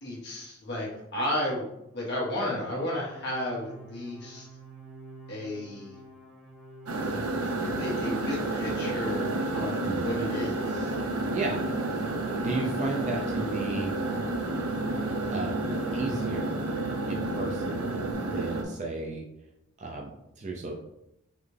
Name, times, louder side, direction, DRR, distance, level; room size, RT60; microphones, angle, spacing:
voice 1, 0.0-1.7 1.9-4.5 5.3-5.9 7.4-10.9, left 1 dB, 50° left, -4 dB, 1.4 m, -33 dB
sound 1, 1.9-18.1, right 4 dB, ahead, 1.3 m, -48 dB
sound 2, 6.9-18.6, right 2 dB, 85° right, 0.7 m, -30 dB
voice 2, 12.4-13.9 15.3-16.7 17.1-17.9 18.2-19.2 19.8-20.7, right 3 dB, 35° right, 0 dB, 0.4 m, -34 dB
4.1 x 3.2 x 3.3 m, 0.85 s
head